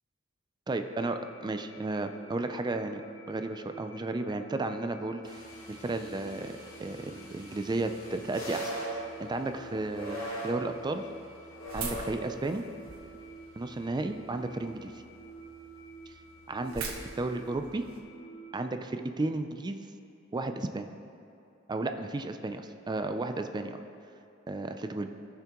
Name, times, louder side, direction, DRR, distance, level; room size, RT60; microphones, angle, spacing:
voice 1, 0.7-3.0 3.3-6.5 6.8-11.1 11.7-12.6 13.6-14.9 16.1-16.2 16.5-17.9 18.5-19.8 20.3-20.9 21.7-23.8 24.5-25.1, right 2 dB, 20° right, 7 dB, 0.4 m, -33 dB
sound 1, 0.8-18.6, right 3 dB, 55° left, 1.8 m, -50 dB
sound 2, 5.2-17.0, right 1 dB, 85° left, 2.3 m, -43 dB
sound 3, 11.7-13.2 13.7-14.4 14.9-15.0 15.2-15.3 15.7-15.8 15.9-18.0, right 4 dB, 80° right, 1.3 m, -41 dB
17.0 x 5.8 x 3.0 m, 2.7 s
head